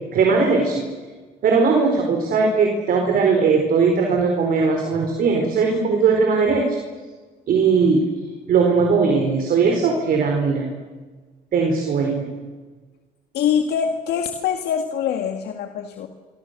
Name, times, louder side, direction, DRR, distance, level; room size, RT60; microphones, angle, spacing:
voice 1, 0.1-0.8 1.4-6.8 7.5-8.0 8.5-10.7 11.5-12.3, right 4 dB, 60° right, 2 dB, 4.4 m, -19 dB
voice 2, 13.3-16.1, left 8 dB, 75° left, 5 dB, 2.0 m, -24 dB
27.0 x 25.0 x 6.8 m, 1.4 s
cardioid pair, 110°, 17 cm